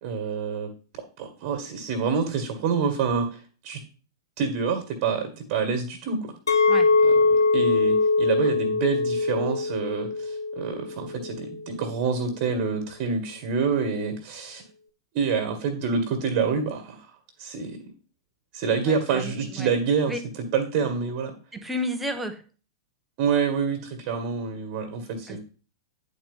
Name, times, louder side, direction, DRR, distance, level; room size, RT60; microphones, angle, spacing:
voice 1, 0.0-3.8 4.4-6.3 7.0-14.6 15.1-17.1 17.4-17.9 18.5-21.3 23.2-25.4, right 5 dB, 45° right, 5 dB, 1.9 m, -27 dB
Chink clink, 6.5-11.6, left 3 dB, 75° left, 1.1 m, -22 dB
voice 2, 18.9-19.7 20.1-20.2 21.5-22.4 25.3-25.4, equal, 5° right, 5 dB, 1.2 m, -32 dB
10.0 x 4.5 x 5.5 m, 0.38 s
figure-of-eight pair, 95°, 2 cm